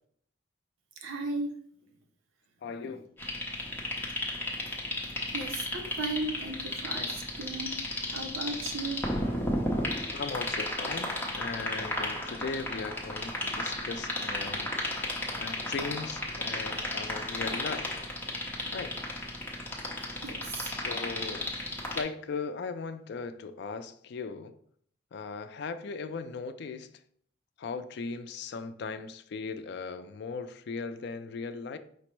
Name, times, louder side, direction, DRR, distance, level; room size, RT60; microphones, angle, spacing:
voice 1, 1.0-1.5 5.3-9.0 20.2-20.7, right 2 dB, 80° right, 0.7 m, -36 dB
voice 2, 2.6-3.1 10.1-15.0 15.4-18.0 18.7-18.9 20.7-21.5 21.9-24.6 25.1-26.9 27.6-31.8, left 4 dB, 55° left, 0.3 m, -38 dB
sound 1, 3.2-22.0, left 1 dB, 10° left, 0.6 m, -34 dB
5.0 x 2.0 x 4.4 m
head